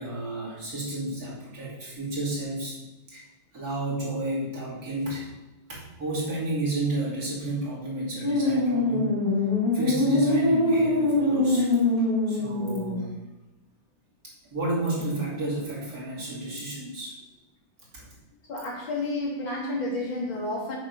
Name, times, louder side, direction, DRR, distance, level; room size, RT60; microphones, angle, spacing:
voice 1, 0.0-2.8 3.1-3.2 3.5-5.3 5.7-9.2 9.7-11.7 12.0-13.1 14.5-17.2 17.9-18.1, right 2 dB, 50° right, -6 dB, 3.0 m, -31 dB
sound 1, 8.2-13.0, left 2 dB, 15° right, 2.8 m, -23 dB
voice 2, 18.5-20.8, left 2 dB, 80° left, -4 dB, 3.3 m, -30 dB
7.7 x 6.4 x 5.3 m, 1.1 s
omnidirectional pair, 2.1 m